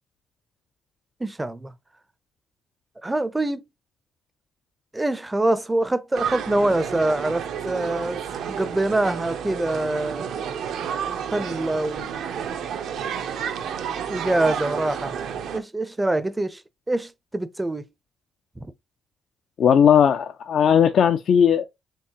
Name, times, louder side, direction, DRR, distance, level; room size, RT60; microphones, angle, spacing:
voice 1, 1.2-1.7 3.0-3.6 4.9-8.2 8.5-10.4 11.3-12.1 14.1-15.2 15.5-16.6 16.9-17.9 18.6-18.7, right 2 dB, 15° right, 0.4 m, -25 dB
sound 1, 6.1-15.6, right 8 dB, 80° right, 0.6 m, -31 dB
voice 2, 19.6-21.7, left 8 dB, 65° left, 0.4 m, -17 dB
4.5 x 3.0 x 2.8 m
cardioid pair, 90°, 0 cm